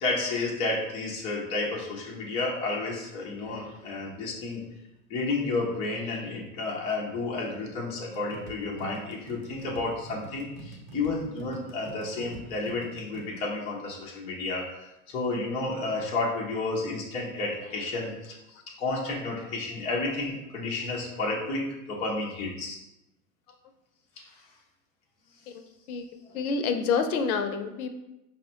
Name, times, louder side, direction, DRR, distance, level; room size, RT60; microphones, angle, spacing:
voice 1, 0.0-4.6 5.1-22.8 24.2-24.3, left 3 dB, 15° left, -2 dB, 0.4 m, -31 dB
sound 1, 8.1-13.3, right 3 dB, 35° right, 0.7 m, -46 dB
voice 2, 25.5-26.1 26.3-27.9, left 5 dB, 65° left, 8 dB, 0.6 m, -28 dB
5.1 x 2.1 x 2.8 m, 0.92 s
hypercardioid pair, 110°, 48 cm